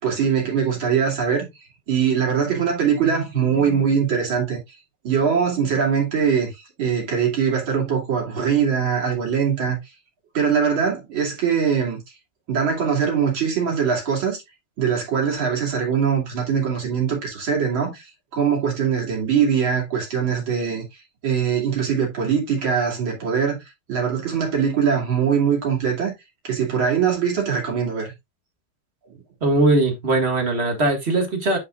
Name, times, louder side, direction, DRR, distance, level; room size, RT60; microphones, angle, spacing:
voice 1, 0.0-1.5 1.9-4.6 5.0-9.8 10.3-12.0 12.5-14.4 14.8-18.0 18.3-20.8 21.2-23.6 23.9-26.1 26.4-28.1, right 7 dB, 65° right, 3.4 m, -22 dB
voice 2, 29.4-31.6, right 2 dB, 30° right, 2.0 m, -20 dB
9.3 x 5.7 x 2.4 m
omnidirectional pair, 2.4 m